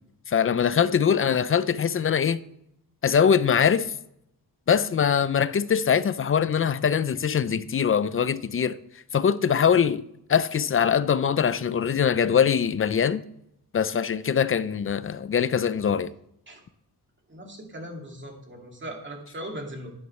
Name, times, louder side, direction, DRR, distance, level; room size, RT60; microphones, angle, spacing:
voice 1, 0.3-2.4 3.0-3.9 4.7-8.8 9.1-10.0 10.3-13.2 13.7-16.1, left 7 dB, 35° left, 0.5 m, -22 dB
voice 2, 17.3-19.9, right 1 dB, 30° right, 2.3 m, -39 dB
11.0 x 9.6 x 3.2 m
wide cardioid pair, 110°, 39 cm